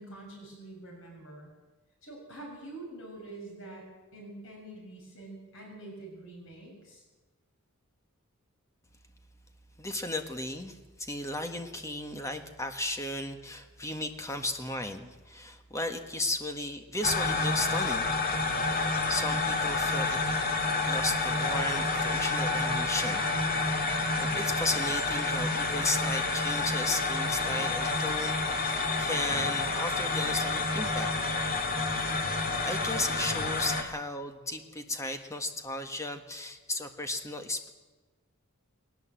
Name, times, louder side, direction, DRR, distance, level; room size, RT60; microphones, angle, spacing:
voice 1, 0.0-1.5 2.0-3.9 4.1-7.0, right 2 dB, 60° left, 0 dB, 6.8 m, -46 dB
voice 2, 9.8-18.1 18.4-18.6 19.1-20.2 20.9-23.3 23.5-23.8 24.2-31.1 32.6-37.7, left 2 dB, 15° left, 6 dB, 1.6 m, -35 dB
sound 1, 17.0-33.8, left 3 dB, 45° left, 2.2 m, -29 dB
20.0 x 18.5 x 7.7 m, 1.2 s
head